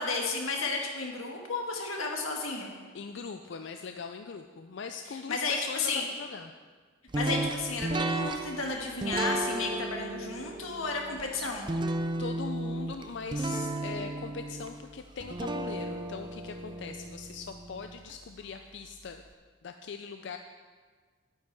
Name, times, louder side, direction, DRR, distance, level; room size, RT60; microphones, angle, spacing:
voice 1, 0.0-2.7 5.1-6.1 7.1-11.7, left 3 dB, 90° left, 1 dB, 1.7 m, -33 dB
voice 2, 2.9-6.5 12.2-19.2 19.6-20.4, left 5 dB, 60° left, 6 dB, 0.4 m, -41 dB
sound 1, 7.1-18.2, right 2 dB, 25° right, 0.4 m, -34 dB
10.0 x 9.3 x 4.7 m, 1.5 s
head